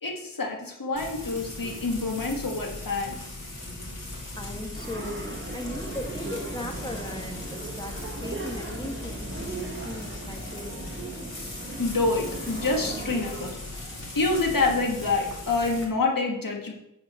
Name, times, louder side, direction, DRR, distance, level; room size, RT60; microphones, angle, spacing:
voice 1, 0.0-3.2 11.8-16.7, left 3 dB, 85° left, 1 dB, 1.4 m, -27 dB
Frying (food), 0.9-15.8, left 2 dB, 55° left, 2.6 m, -38 dB
voice 2, 4.3-10.9, left 1 dB, 15° left, 2 dB, 1.4 m, -38 dB
sound 1, 4.7-13.5, right 3 dB, 35° right, 1.3 m, -38 dB
8.6 x 4.4 x 5.4 m, 0.85 s
wide cardioid pair, 45°, 33 cm